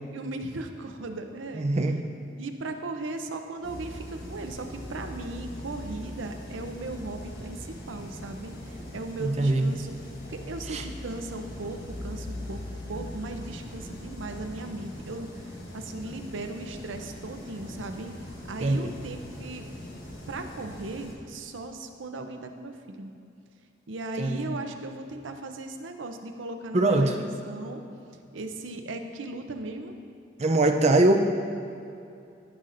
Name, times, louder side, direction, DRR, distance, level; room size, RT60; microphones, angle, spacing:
voice 1, 0.1-1.7 2.4-9.9 10.3-12.6 12.9-15.3 15.7-19.7 20.3-23.1 23.9-27.8 28.3-29.9, right 2 dB, 80° right, 6 dB, 0.6 m, -37 dB
voice 2, 1.5-2.1 9.2-9.7 10.7-10.8 18.6-18.9 24.2-24.5 26.7-27.1 30.4-31.2, right 2 dB, 35° right, 4 dB, 0.5 m, -22 dB
sound 1, 3.6-21.1, left 1 dB, 55° left, 1.4 m, -41 dB
15.0 x 5.6 x 2.6 m, 2.5 s
head